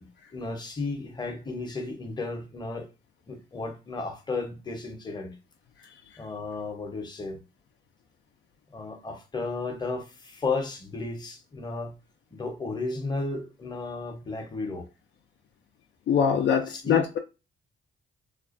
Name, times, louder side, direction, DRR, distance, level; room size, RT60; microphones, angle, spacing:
voice 1, 0.0-2.9 3.3-5.4 6.2-7.4 8.7-12.0 12.3-14.9 16.7-17.0, left 3 dB, 20° left, 0.7 m, -34 dB
voice 2, 16.1-17.2, left 7 dB, 60° left, 0.4 m, -23 dB
2.4 x 2.1 x 2.5 m
cardioid pair, 90°, 20 cm